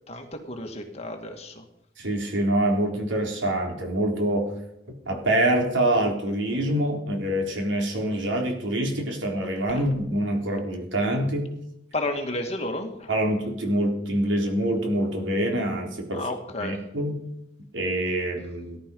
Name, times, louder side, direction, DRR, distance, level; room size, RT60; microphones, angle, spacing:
voice 1, 0.1-1.6 9.7-9.8 11.9-13.1 16.1-16.8, left 2 dB, 35° left, 3 dB, 2.2 m, -32 dB
voice 2, 2.0-4.5 4.9-11.5 13.1-16.3 16.6-17.2 17.7-18.8, right 1 dB, 85° right, 2 dB, 3.9 m, -25 dB
18.0 x 12.0 x 5.5 m, 0.81 s
head